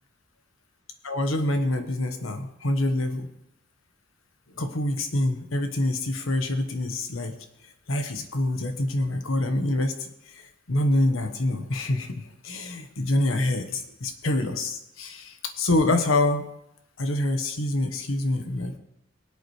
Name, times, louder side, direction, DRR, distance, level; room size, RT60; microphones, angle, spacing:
voice 1, 1.0-3.3 4.6-7.4 7.9-16.5 17.0-18.7, left 1 dB, 75° left, 6 dB, 1.3 m, -26 dB
23.0 x 8.4 x 3.2 m, 0.83 s
head